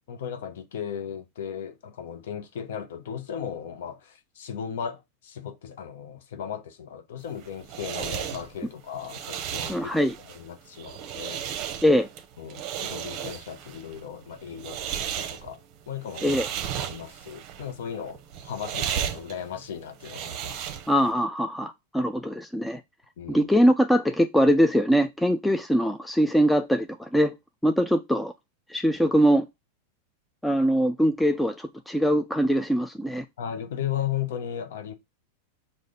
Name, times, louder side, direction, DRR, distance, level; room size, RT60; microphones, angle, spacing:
voice 1, 0.0-9.9 10.2-11.4 12.4-15.6 15.9-16.4 16.7-20.6 23.2-23.5 33.4-34.9, left 8 dB, 75° left, 0.8 m, -36 dB
sound 1, 7.2-21.1, right 9 dB, 45° right, 0.7 m, -35 dB
voice 2, 9.7-10.1 11.8-12.1 16.2-16.5 20.9-22.8 23.3-27.3 27.6-28.3 28.7-29.5 30.4-33.2, equal, 5° left, 0.3 m, -22 dB
5.0 x 2.4 x 3.8 m
hypercardioid pair, 125°, 0 cm